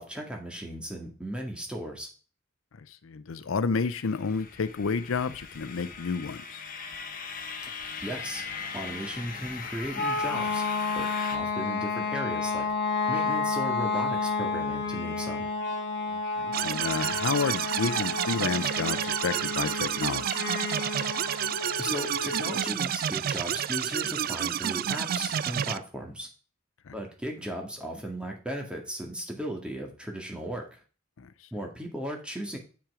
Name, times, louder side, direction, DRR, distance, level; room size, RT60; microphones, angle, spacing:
voice 1, 0.0-2.1 8.0-8.4 8.7-10.7 11.0-12.7 13.1-15.5 21.8-26.3 26.9-30.6 31.5-32.6, equal, 5° right, 1 dB, 2.0 m, -36 dB
voice 2, 2.9-6.6 16.4-20.4 26.9-27.0 31.2-31.3, left 5 dB, 80° left, 13 dB, 0.5 m, -30 dB
sound 1, 3.8-11.4, left 5 dB, 45° left, 1.3 m, -39 dB
sound 2, 9.9-22.7, left 4 dB, 60° left, 1.5 m, -31 dB
sound 3, 16.5-25.8, right 10 dB, 50° right, 0.3 m, -30 dB
8.9 x 6.0 x 4.9 m, 0.37 s
head